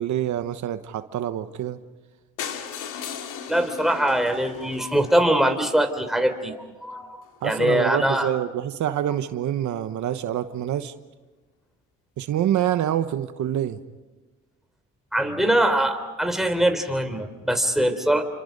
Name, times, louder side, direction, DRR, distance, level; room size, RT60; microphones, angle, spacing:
voice 1, 0.0-1.8 7.4-10.9 12.2-13.8, right 11 dB, 75° right, 10 dB, 1.1 m, -26 dB
sound 1, 2.4-6.3 6.9-7.0 7.2-7.4 7.6-7.7 7.9-8.0, left 8 dB, 85° left, 2.3 m, -37 dB
voice 2, 3.5-8.3 15.1-18.2, right 1 dB, ahead, 6 dB, 3.4 m, -22 dB
30.0 x 26.0 x 5.3 m, 1.2 s
cardioid pair, 90°, 30 cm